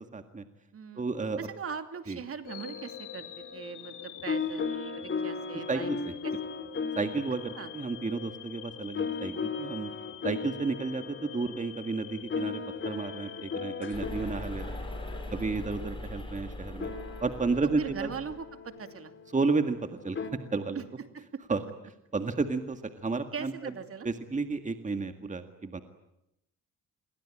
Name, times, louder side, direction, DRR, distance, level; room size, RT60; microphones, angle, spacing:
voice 1, 0.1-0.4 1.0-1.4 2.1-2.2 5.7-6.1 7.0-9.9 10.2-14.9 15.3-16.9 17.2-18.1 19.3-20.2 20.5-20.8 21.5-21.6 22.1-23.7 24.1-25.8, right 4 dB, 25° right, 8 dB, 1.9 m, -32 dB
voice 2, 0.7-1.0 1.4-3.3 3.5-5.9 6.2-6.3 7.6-7.7 15.3-16.0 17.8-19.1 20.7-20.8 21.1-21.2 23.3-24.1, right 6 dB, 50° right, 9 dB, 2.7 m, -40 dB
sound 1, 2.4-14.6, left 10 dB, 80° left, 3.7 m, -46 dB
sound 2, 2.5-20.3, left 5 dB, 40° left, 3.6 m, -38 dB
sound 3, 13.9-18.4, left 1 dB, 15° left, 7.2 m, -40 dB
27.5 x 23.0 x 8.8 m, 0.84 s
cardioid pair, 90°, 30 cm